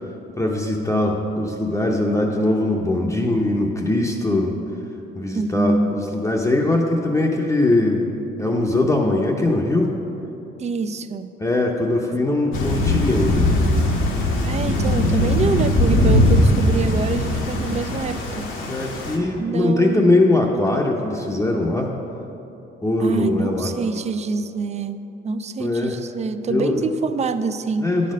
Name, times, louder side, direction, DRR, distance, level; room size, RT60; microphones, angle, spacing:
voice 1, 0.4-4.5 5.2-8.1 8.4-9.9 11.4-13.5 18.7-21.9 22.8-23.7 25.6-26.0 26.5-26.9 27.8-28.1, left 2 dB, 15° left, -2 dB, 0.7 m, -21 dB
voice 2, 5.3-5.9 10.6-11.3 14.0-14.1 14.4-18.5 19.4-20.6 23.0-27.9, right 4 dB, 35° right, 11 dB, 0.4 m, -26 dB
Thunder / Rain, 12.5-19.2, left 1 dB, 80° left, 1.3 m, -20 dB
9.8 x 4.3 x 6.2 m, 2.9 s
cardioid pair, 90°, 20 cm